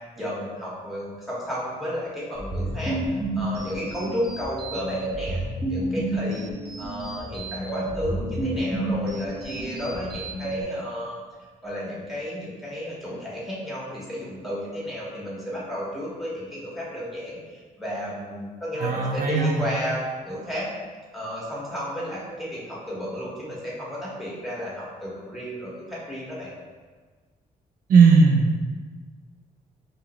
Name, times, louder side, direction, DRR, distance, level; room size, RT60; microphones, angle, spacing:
voice 1, 0.1-5.4 5.7-6.5 6.8-11.1 11.6-20.7 21.1-26.5, equal, ahead, -7 dB, 1.5 m, -32 dB
sound 1, 2.3-10.6, right 1 dB, 30° right, 0.8 m, -30 dB
voice 2, 18.8-19.6 27.9-28.5, right 5 dB, 70° right, 2 dB, 0.5 m, -17 dB
4.8 x 3.0 x 3.0 m, 1.5 s
cardioid pair, 110°, 15 cm